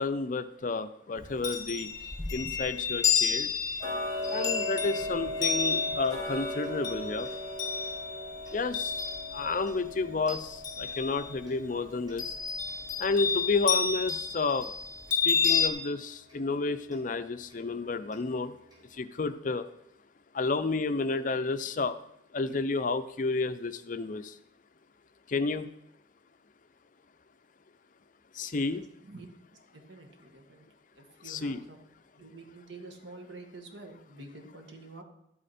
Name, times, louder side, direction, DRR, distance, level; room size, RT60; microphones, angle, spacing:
voice 1, 0.0-1.9 2.3-3.5 4.3-7.3 8.5-9.0 9.3-12.4 13.0-14.7 15.1-18.6 18.9-19.7 20.3-22.0 22.3-24.4 25.3-25.7 28.3-28.8 31.2-31.6, left 3 dB, 45° left, 11 dB, 0.5 m, -31 dB
Chime, 1.2-9.7 10.0-11.4 12.2-15.7, left 6 dB, 25° left, 1.4 m, -31 dB
Tick-tock, 3.8-14.6 15.1-15.2 15.7-15.8 16.3-16.4 16.9-17.0 17.5-17.6 18.1-18.2 18.7-18.8, left 1 dB, 25° right, 4.7 m, -38 dB
voice 2, 29.7-30.6 30.9-31.8 32.2-35.0, right 2 dB, 75° right, 3 dB, 1.8 m, -48 dB
12.0 x 8.6 x 4.2 m, 0.79 s
head